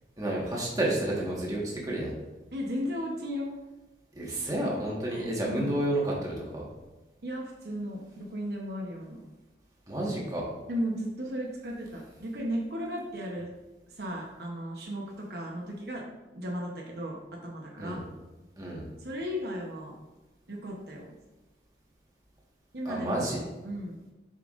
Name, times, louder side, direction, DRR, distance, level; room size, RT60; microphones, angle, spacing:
voice 1, 0.2-2.1 4.1-6.7 9.9-10.4 17.8-18.0 18.6-18.8 22.8-23.4, right 1 dB, 20° right, -4 dB, 1.5 m, -30 dB
voice 2, 2.5-3.5 5.1-5.2 5.5-5.8 7.2-9.2 10.7-13.5 13.9-16.0 16.3-17.2 17.4-18.0 19.0-20.0 20.5-21.1 22.7-24.0, equal, 60° right, -2 dB, 0.9 m, -35 dB
7.0 x 5.6 x 2.5 m, 1.1 s
head